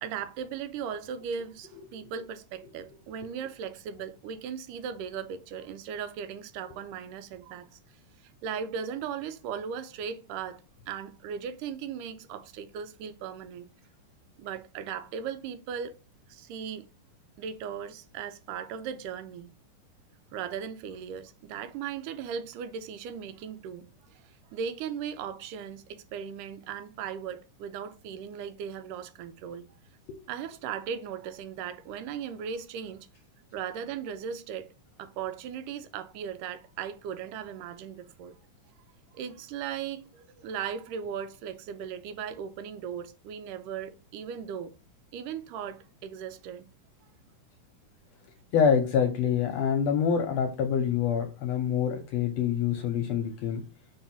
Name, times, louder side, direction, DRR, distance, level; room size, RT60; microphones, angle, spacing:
voice 1, 0.0-7.8 8.2-13.7 14.4-15.9 16.3-16.9 17.4-19.5 20.3-29.6 30.3-33.1 33.5-34.7 35.0-38.4 39.1-44.7 45.1-46.7, right 7 dB, 90° right, 2.3 m, -37 dB
voice 2, 48.5-53.6, left 7 dB, 70° left, 1.7 m, -26 dB
5.6 x 4.2 x 5.9 m
omnidirectional pair, 3.8 m